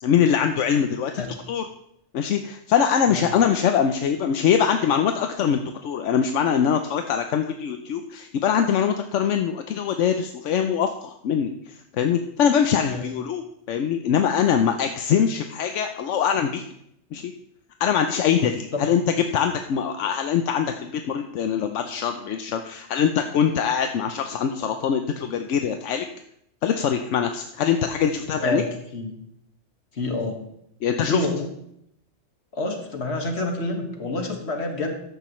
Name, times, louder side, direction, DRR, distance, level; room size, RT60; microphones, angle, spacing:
voice 1, 0.0-1.7 2.1-13.4 13.7-16.6 17.1-17.3 17.8-19.0 19.3-26.1 26.6-28.6 30.8-31.3, left 8 dB, 85° left, 6 dB, 1.0 m, -23 dB
voice 2, 28.1-28.7 28.9-29.2 29.9-30.4 31.0-31.5 32.5-34.9, left 2 dB, 65° left, 3 dB, 1.9 m, -28 dB
13.5 x 10.5 x 3.1 m, 0.76 s
omnidirectional pair, 1.2 m